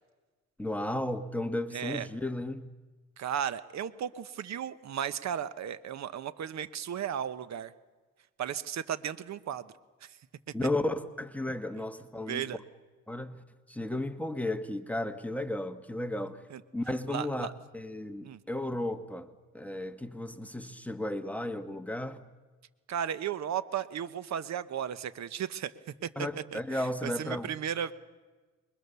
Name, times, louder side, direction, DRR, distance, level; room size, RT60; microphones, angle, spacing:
voice 1, 0.6-2.7 10.5-12.5 13.1-13.4 13.7-16.4 16.7-22.2 26.2-27.5, left 1 dB, 5° left, 1.5 m, -34 dB
voice 2, 1.7-2.1 3.2-7.7 8.4-9.7 10.0-10.2 12.3-12.6 16.5-16.6 17.1-17.5 18.2-18.4 22.9-27.9, right 9 dB, 65° right, 1.2 m, -35 dB
27.5 x 22.5 x 6.9 m
cardioid pair, 85°, 30 cm